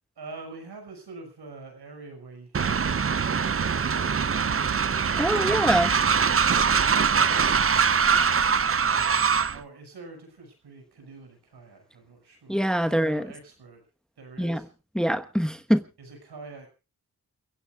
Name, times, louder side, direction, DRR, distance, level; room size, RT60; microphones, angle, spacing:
voice 1, 0.2-4.8 7.1-7.5 8.0-13.8 14.2-14.7 16.0-16.7, right 3 dB, 90° right, 6.1 m, -45 dB
Train, 2.5-9.6, right 6 dB, 35° right, 0.7 m, -23 dB
voice 2, 5.2-5.9 12.5-13.2 14.4-14.6 14.9-15.8, equal, ahead, 1.2 m, -24 dB
29.0 x 16.0 x 2.4 m
cardioid pair, 55°, 38 cm